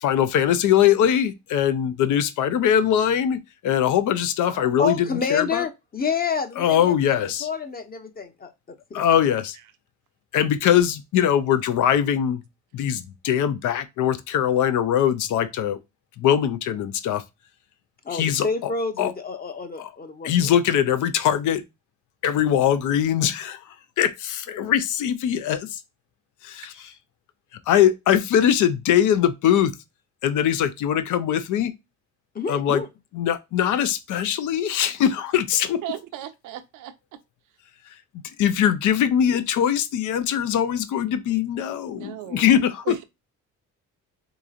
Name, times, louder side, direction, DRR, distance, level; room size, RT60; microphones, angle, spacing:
voice 1, 0.0-5.6 6.6-7.5 8.9-9.6 10.3-12.4 12.7-15.8 16.2-17.2 18.1-18.7 19.0-19.1 19.8-19.9 20.2-21.6 22.2-23.6 24.0-25.8 27.7-29.7 30.2-31.7 32.5-32.8 33.1-35.8 38.4-42.9, left 9 dB, 80° left, 0.6 m, -21 dB
voice 2, 4.5-7.2 7.4-8.5 8.9-9.0 18.0-20.5 32.3-32.9, left 5 dB, 30° left, 0.8 m, -28 dB
voice 3, 35.8-36.9 42.0-42.6 42.9-43.0, right 13 dB, 80° right, 0.6 m, -36 dB
3.7 x 2.9 x 2.4 m
cardioid pair, 80°, 30 cm